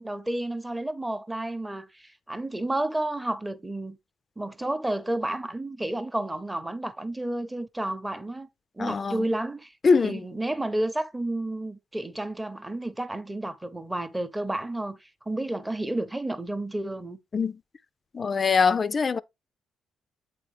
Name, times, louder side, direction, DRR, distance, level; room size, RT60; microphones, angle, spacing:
voice 1, 0.0-4.0 4.4-8.5 8.8-9.7 10.0-17.2, right 1 dB, 10° right, 0.8 m, -31 dB
voice 2, 8.8-9.3 9.8-10.2 17.3-17.6 18.1-19.2, left 5 dB, 35° left, 0.4 m, -23 dB
8.0 x 4.2 x 3.3 m
cardioid pair, 90°, 0 cm